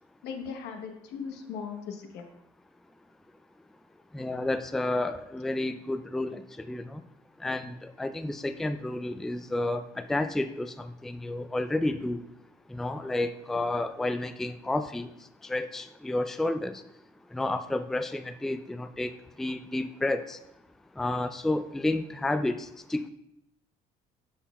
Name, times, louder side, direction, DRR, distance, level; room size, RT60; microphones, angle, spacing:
voice 1, 0.2-2.3, left 6 dB, 80° left, 5 dB, 1.0 m, -38 dB
voice 2, 4.1-7.0 7.4-12.2 12.7-15.1 15.4-16.8 17.3-19.1 19.4-20.4 21.0-23.1, left 2 dB, ahead, 9 dB, 0.3 m, -31 dB
9.8 x 6.0 x 2.3 m, 0.80 s
cardioid pair, 110°, 17 cm